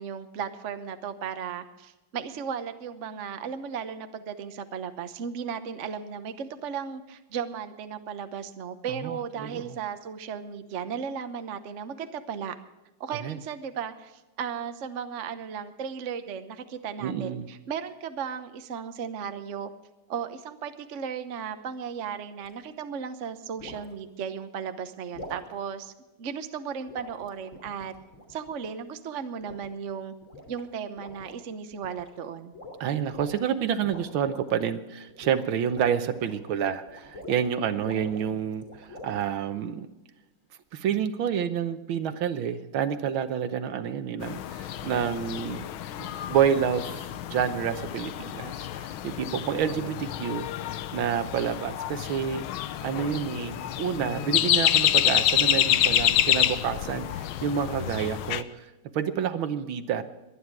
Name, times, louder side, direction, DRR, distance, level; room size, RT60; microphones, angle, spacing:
voice 1, 0.0-12.6 13.0-19.7 20.1-25.9 26.2-27.9 28.3-30.1 30.5-32.5 49.5-49.9, right 7 dB, 50° right, 9 dB, 0.9 m, -35 dB
voice 2, 9.0-9.6 13.2-13.4 17.0-17.5 32.8-39.9 40.7-45.7 46.0-46.9 47.3-50.5 50.9-52.4 52.8-58.7 58.9-60.0, right 8 dB, 70° right, 11 dB, 1.6 m, -29 dB
sound 1, 22.4-22.6 23.6-23.9 25.1-25.5 26.9-28.7 29.4-29.9 30.2-30.6 31.0-31.4 31.7-32.2 32.5-33.4 33.8-34.7 35.1-37.5 37.8-39.3, left 1 dB, 35° left, 3.4 m, -45 dB
sound 2, 44.2-58.4, left 11 dB, 75° left, 1.5 m, -28 dB
23.0 x 10.0 x 4.7 m, 1.1 s
omnidirectional pair, 2.4 m